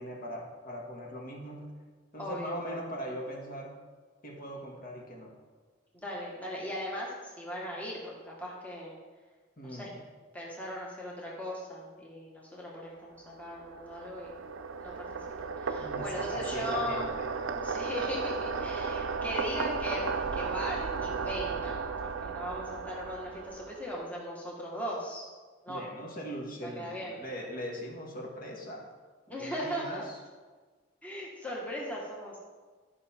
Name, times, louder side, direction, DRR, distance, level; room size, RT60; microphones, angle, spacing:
voice 1, 0.0-1.7 2.1-3.8 4.2-5.4 9.6-10.0 15.8-17.3 25.7-28.9 29.3-30.2, equal, 50° left, -2 dB, 1.9 m, -40 dB
voice 2, 2.2-2.5 5.9-8.9 9.6-9.9 10.3-14.5 14.8-15.1 15.4-17.1 17.5-25.2 25.6-25.8 26.6-27.2 29.3-30.0 31.0-32.5, equal, 10° left, -4 dB, 1.4 m, -38 dB
sound 1, 13.3-23.9, right 5 dB, 90° right, 0.6 m, -35 dB
12.0 x 5.6 x 4.4 m, 1.4 s
head